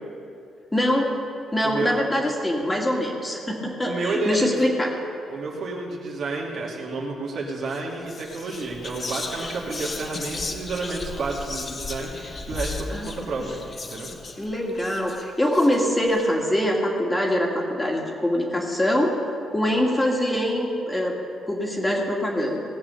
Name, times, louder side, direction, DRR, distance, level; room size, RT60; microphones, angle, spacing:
voice 1, 0.7-1.1 1.5-4.9 12.9-13.1 13.4-13.5 14.4-21.2 21.5-22.6, left 1 dB, 15° left, -1 dB, 2.1 m, -24 dB
voice 2, 1.6-2.0 3.9-4.6 5.3-13.6 13.9-14.1, right 3 dB, 65° right, -2 dB, 2.3 m, -30 dB
Whispering, 7.6-7.8 8.1-16.2, left 3 dB, 35° left, 1.1 m, -35 dB
17.5 x 7.4 x 6.8 m, 2.6 s
cardioid pair, 105°, 0 cm